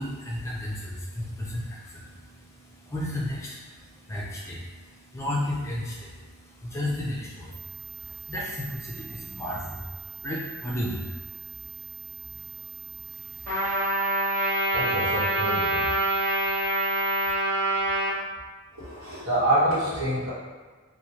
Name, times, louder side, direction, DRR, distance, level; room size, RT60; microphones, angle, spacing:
voice 1, 0.0-13.9, left 1 dB, 15° left, -5 dB, 0.4 m, -35 dB
sound 1, 7.5-17.3, right 7 dB, 85° right, 0.6 m, -42 dB
Trumpet, 13.5-18.1, right 1 dB, 35° right, 0.9 m, -25 dB
voice 2, 14.7-15.9 18.7-20.3, right 1 dB, 65° right, -11 dB, 1.1 m, -26 dB
3.0 x 2.2 x 2.7 m, 1.4 s
head